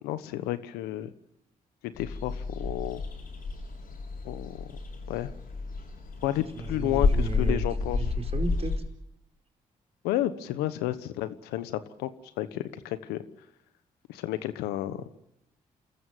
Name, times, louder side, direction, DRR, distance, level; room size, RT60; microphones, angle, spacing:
voice 1, 0.0-1.1 1.8-3.0 4.2-4.8 5.1-5.3 6.2-8.0 10.0-12.1 12.4-13.2 14.1-15.0, left 14 dB, 90° left, 13 dB, 1.2 m, -31 dB
sound 1, 1.9-8.8, left 3 dB, 65° left, 7.1 m, -30 dB
voice 2, 6.5-8.7 15.0-15.1, right 4 dB, 40° right, 5 dB, 4.7 m, -36 dB
27.5 x 14.5 x 9.2 m, 0.85 s
supercardioid pair, 45°, 16 cm